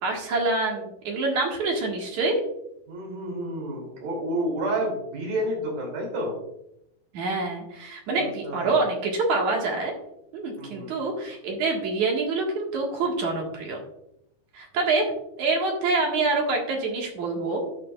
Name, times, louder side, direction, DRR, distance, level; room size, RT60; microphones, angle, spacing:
voice 1, 0.0-2.4 7.1-9.9 10.3-13.8 14.5-15.1 15.4-17.6, right 3 dB, 60° right, 0 dB, 2.9 m, -26 dB
voice 2, 2.9-6.4 8.4-8.8 10.6-11.0, right 1 dB, 85° right, -2 dB, 4.9 m, -30 dB
13.0 x 9.7 x 2.4 m, 0.79 s
omnidirectional pair, 4.1 m